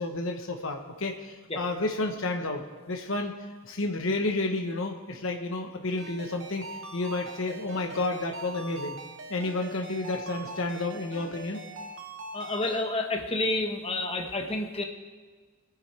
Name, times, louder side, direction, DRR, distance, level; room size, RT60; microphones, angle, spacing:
voice 1, 0.0-3.3 3.6-6.6 6.9-9.0 9.3-11.6, left 2 dB, 70° left, 3 dB, 1.1 m, -31 dB
Ringtone, 6.0-12.8, right 2 dB, 60° right, 1.3 m, -42 dB
voice 2, 12.3-14.8, left 2 dB, 30° left, 3 dB, 1.2 m, -29 dB
22.0 x 9.8 x 3.3 m, 1.4 s
head